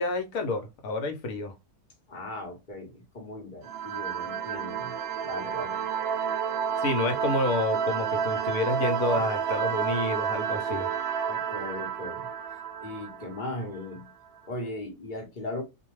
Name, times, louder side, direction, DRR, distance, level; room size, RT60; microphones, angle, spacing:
voice 1, 0.0-1.5 6.8-10.9, left 2 dB, 70° left, 1.0 m, -29 dB
voice 2, 2.1-5.0 5.2-5.9 11.3-12.3 12.8-14.1 14.4-15.6, left 2 dB, 40° left, 0.8 m, -38 dB
sound 1, 3.6-14.0, right 7 dB, 80° right, 0.5 m, -30 dB
2.5 x 2.2 x 3.0 m
omnidirectional pair, 1.6 m